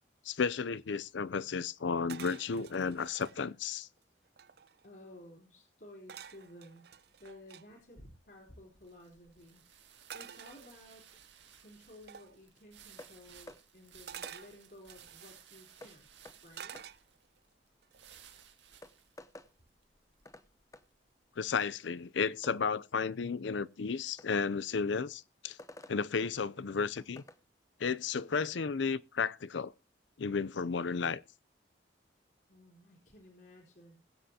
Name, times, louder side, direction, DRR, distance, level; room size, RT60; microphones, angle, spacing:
voice 1, 0.2-3.9 21.4-25.6 25.9-27.2 27.8-29.7 30.2-31.2, left 5 dB, 80° left, 0.5 m, -33 dB
sound 1, 2.1-3.4 4.0-4.1 4.3-4.9 6.1-7.7 10.1-11.2 12.1-12.4 14.1-15.3 16.5-17.4 17.8-18.2, right 8 dB, 55° right, 0.6 m, -49 dB
voice 2, 4.8-9.6 10.1-11.1 11.6-16.1 16.4-16.8 32.5-34.0, left 1 dB, 60° left, 3.6 m, -55 dB
sound 2, 8.2-21.1, right 9 dB, 75° right, 2.3 m, -59 dB
sound 3, 13.0-13.1 13.5-13.6 14.2-14.4 15.8-15.9 16.2-16.4 16.7-16.9 18.3-18.4 18.8-19.5 20.2-20.5 20.7-20.9 22.4-22.6 24.2-24.3 25.6-26.0 27.0-27.4, left 1 dB, 15° left, 0.7 m, -51 dB
21.0 x 7.9 x 2.8 m
head